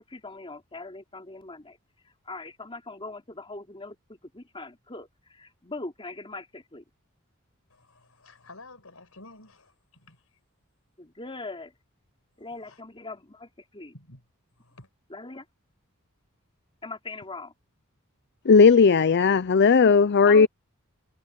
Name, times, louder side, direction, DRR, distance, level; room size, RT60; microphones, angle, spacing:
voice 1, 0.0-1.8 2.2-6.8 11.0-11.7 12.4-13.9 15.1-15.4 16.8-17.5 20.3-20.5, left 3 dB, 25° left, 3.4 m, -40 dB
voice 2, 7.7-10.2 12.7-12.8 13.9-14.2 14.6-14.9, left 2 dB, 75° left, 5.8 m, -50 dB
voice 3, 18.5-20.5, left 5 dB, 50° left, 0.5 m, -16 dB
head